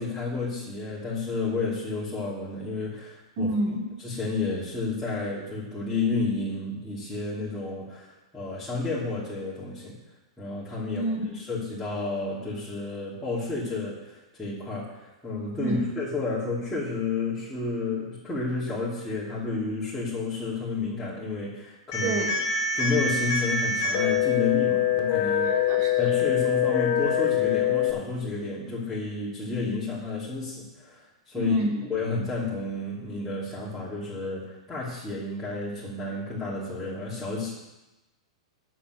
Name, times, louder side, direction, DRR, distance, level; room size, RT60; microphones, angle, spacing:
voice 1, 0.0-3.5 4.0-10.0 10.4-11.1 11.3-22.2 22.7-25.5 26.0-31.6 31.9-37.5, left 3 dB, 5° left, -11 dB, 2.8 m, -31 dB
voice 2, 3.4-3.8 10.9-11.3 15.6-15.8 22.0-22.4 25.4-25.9 31.3-31.9, right 1 dB, 50° right, -2 dB, 3.5 m, -28 dB
sound 1, 21.9-27.9, left 7 dB, 50° left, 1.7 m, -24 dB
8.4 x 6.2 x 8.0 m, 1.0 s
hypercardioid pair, 130°, 3 cm